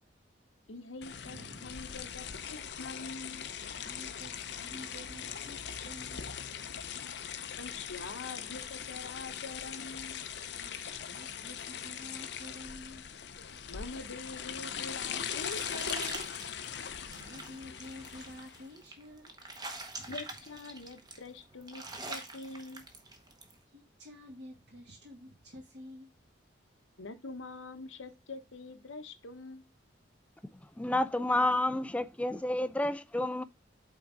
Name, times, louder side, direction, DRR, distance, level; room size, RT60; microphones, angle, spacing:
voice 1, 0.7-3.5 7.6-10.2 13.7-16.3 20.0-22.8 27.0-29.7, left 3 dB, 90° left, 1.0 m, -45 dB
sound 1, 1.0-18.7, left 8 dB, 60° left, 0.6 m, -41 dB
voice 2, 1.2-2.5 3.6-6.6 10.6-13.0 17.1-19.3 20.0-20.2 21.8-22.0 23.7-26.1, left 1 dB, 60° right, 2.3 m, -50 dB
sound 2, 14.6-23.5, right 2 dB, 20° right, 1.0 m, -45 dB
voice 3, 30.8-33.4, left 1 dB, 5° left, 0.3 m, -30 dB
8.5 x 3.9 x 3.7 m
head